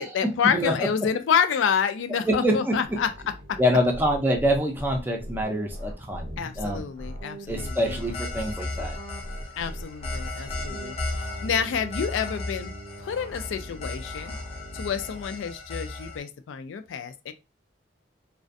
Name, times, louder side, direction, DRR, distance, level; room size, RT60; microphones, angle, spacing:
voice 1, 0.0-3.1 3.5-3.6 6.4-8.0 9.6-12.7 13.0-14.4 14.7-17.3, left 7 dB, 85° left, 0.3 m, -28 dB
voice 2, 0.5-0.9 2.3-2.8 3.6-6.8 7.5-9.0, equal, 10° right, 0.4 m, -25 dB
sound 1, 2.8-15.2, equal, 60° right, 0.5 m, -40 dB
sound 2, 7.6-16.2, left 2 dB, 35° left, 0.6 m, -36 dB
2.4 x 2.2 x 2.5 m
head